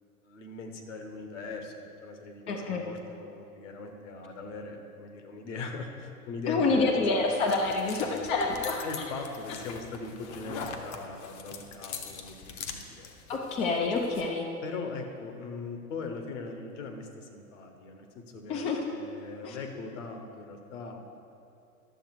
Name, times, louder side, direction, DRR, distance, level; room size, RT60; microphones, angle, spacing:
voice 1, 0.2-1.7 2.0-6.9 7.9-13.1 14.6-21.0, left 4 dB, 55° left, 5 dB, 1.4 m, -40 dB
voice 2, 2.5-2.8 6.5-8.8 13.3-14.5 18.5-18.8 19.4-19.6, left 3 dB, 15° left, 1 dB, 0.5 m, -27 dB
sound 1, 6.8-14.2, left 6 dB, 30° left, 0.9 m, -43 dB
12.0 x 7.3 x 4.6 m, 2.6 s
figure-of-eight pair, 100°, 44 cm